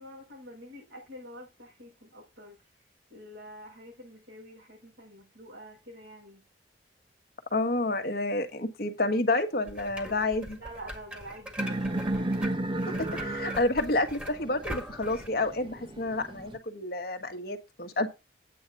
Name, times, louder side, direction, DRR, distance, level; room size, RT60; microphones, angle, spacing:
voice 1, 0.0-2.6 3.1-6.4 10.6-12.4, equal, 80° right, 6.7 m, -47 dB
voice 2, 7.5-10.6 13.0-18.1, left 2 dB, 55° left, 1.4 m, -29 dB
sound 1, 9.7-15.3, equal, 5° right, 1.8 m, -42 dB
sound 2, 11.6-16.6, right 1 dB, 25° right, 0.8 m, -33 dB
8.8 x 8.4 x 4.0 m
head